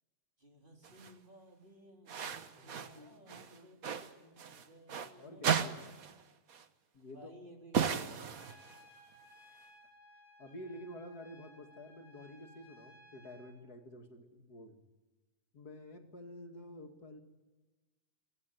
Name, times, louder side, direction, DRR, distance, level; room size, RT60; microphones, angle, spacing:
voice 1, 0.4-4.1 4.4-6.1 7.1-8.7, equal, 35° right, 2 dB, 3.9 m, -58 dB
sound 1, 0.8-1.1 2.1-3.0 3.3-5.1 5.4-6.2 6.5-6.7 7.7-8.9, right 7 dB, 65° right, 1.6 m, -36 dB
voice 2, 2.5-4.5 5.2-5.8 6.9-7.3 10.4-14.8 15.5-17.2, left 1 dB, 85° left, 4 dB, 2.9 m, -50 dB
Trumpet, 8.4-13.6, equal, 15° left, 5.3 m, -60 dB
23.5 x 18.0 x 9.3 m, 1.2 s
omnidirectional pair, 1.6 m